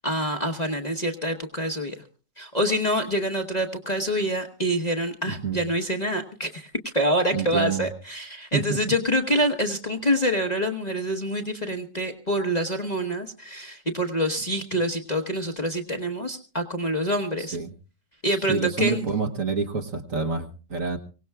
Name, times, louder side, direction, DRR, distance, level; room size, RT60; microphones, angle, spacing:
voice 1, 0.0-2.0 2.4-17.6 18.2-19.0, equal, 30° left, 5 dB, 1.0 m, -26 dB
voice 2, 5.3-5.6 7.3-7.9 8.5-8.8 17.4-17.7 18.5-21.0, right 5 dB, 55° right, 5 dB, 1.4 m, -27 dB
24.5 x 17.5 x 2.3 m, 0.35 s
omnidirectional pair, 1.9 m